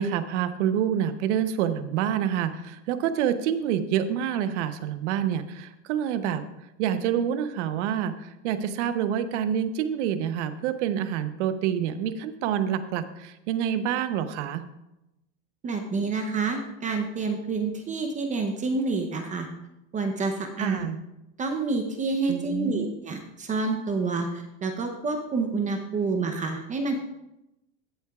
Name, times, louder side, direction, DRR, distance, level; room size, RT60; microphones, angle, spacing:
voice 1, 0.0-6.4 6.8-14.6 20.6-21.0 22.3-22.9, right 9 dB, 75° right, 11 dB, 0.9 m, -27 dB
voice 2, 15.6-19.5 19.9-20.8 21.4-26.9, right 3 dB, 20° right, 4 dB, 0.7 m, -28 dB
15.0 x 7.9 x 2.4 m, 0.91 s
supercardioid pair, 145°, 36 cm